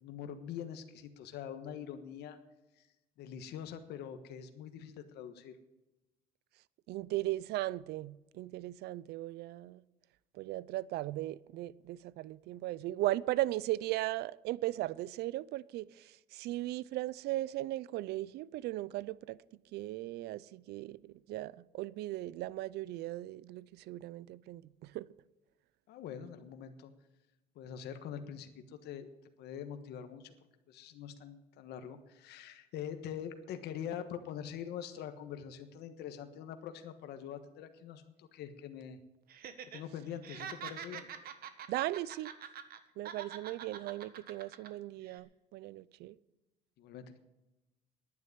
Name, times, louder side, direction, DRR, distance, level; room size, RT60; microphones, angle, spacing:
voice 1, 0.0-2.4 2.8-2.9 3.2-5.6 25.9-26.9 27.5-29.1 29.4-30.3 30.7-39.0 39.7-41.1 46.8-47.2, left 9 dB, 80° left, 1.4 m, -44 dB
voice 2, 6.9-9.8 10.3-19.4 19.7-25.1 41.7-42.3 43.0-46.2, right 16 dB, 80° right, 0.5 m, -37 dB
Laughter, 39.3-39.8 40.1-42.8 43.0-44.7 45.0-45.2, right 8 dB, 65° right, 1.4 m, -45 dB
10.5 x 9.7 x 9.5 m
cardioid pair, 110°, 17 cm